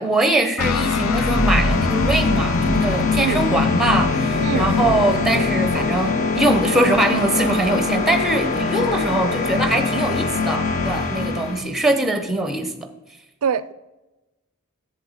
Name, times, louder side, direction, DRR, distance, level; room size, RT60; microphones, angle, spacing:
voice 1, 0.0-12.9, right 2 dB, ahead, 0.8 m, -22 dB
Guitar, 0.6-8.2, left 5 dB, 75° left, 0.4 m, -29 dB
sound 1, 0.6-11.6, left 4 dB, 35° left, 0.8 m, -23 dB
sound 2, 1.0-11.2, equal, 55° left, 2.2 m, -32 dB
voice 2, 4.4-4.7 11.2-11.4 13.4-13.7, right 6 dB, 80° right, 0.4 m, -25 dB
7.7 x 7.3 x 5.0 m
head